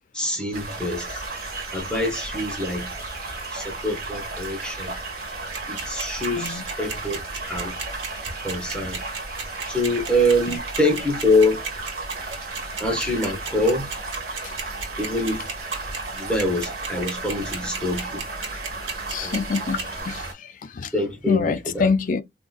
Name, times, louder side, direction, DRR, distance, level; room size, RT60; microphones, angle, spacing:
voice 1, 0.1-1.1 1.7-2.9 3.5-4.9 5.7-7.2 7.5-7.8 8.4-9.0 9.7-11.6 12.8-13.9 15.0-15.5 16.1-18.3 19.2-19.4 20.9-21.9, left 1 dB, 5° left, 0.9 m, -25 dB
sound 1, 0.5-20.3, right 3 dB, 50° right, 1.3 m, -34 dB
sound 2, 1.3-6.7 7.3-10.6, right 3 dB, 15° right, 2.2 m, -44 dB
sound 3, 5.5-20.0, right 5 dB, 85° right, 1.1 m, -32 dB
voice 2, 19.1-20.9 21.3-22.2, left 4 dB, 45° left, 0.3 m, -26 dB
3.6 x 2.5 x 2.3 m
head